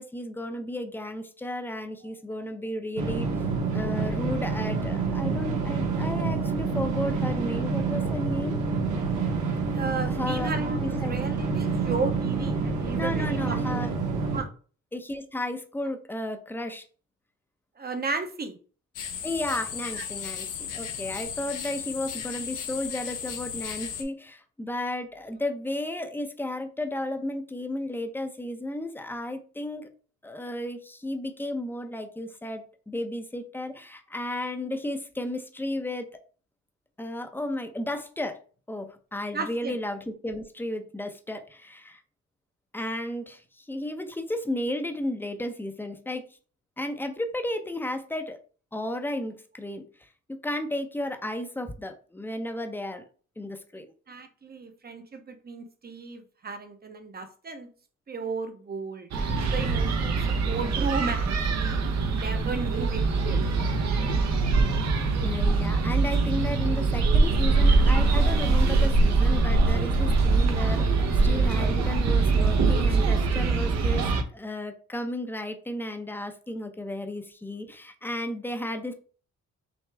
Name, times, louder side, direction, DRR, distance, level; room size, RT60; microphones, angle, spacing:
voice 1, 0.0-3.3 3.7-8.6 10.1-10.5 10.8-11.2 12.9-13.9 14.9-16.8 19.2-29.9 30.2-36.2 37.0-38.4 38.7-42.0 42.7-46.3 46.8-48.4 48.7-53.0 53.4-53.9 65.2-78.9, left 1 dB, 5° left, 0.8 m, -33 dB
sound 1, 3.0-14.4, right 4 dB, 80° right, 1.5 m, -28 dB
voice 2, 9.7-14.5 17.8-18.6 19.9-20.0 39.3-39.8 54.1-57.7 58.1-59.1 59.5-61.8 62.1-63.4, right 4 dB, 30° right, 1.0 m, -34 dB
sound 2, 18.9-24.0, left 8 dB, 85° left, 1.1 m, -35 dB
sound 3, 59.1-74.2, right 3 dB, 60° right, 1.0 m, -23 dB
6.1 x 2.3 x 3.4 m
cardioid pair, 90°, 30 cm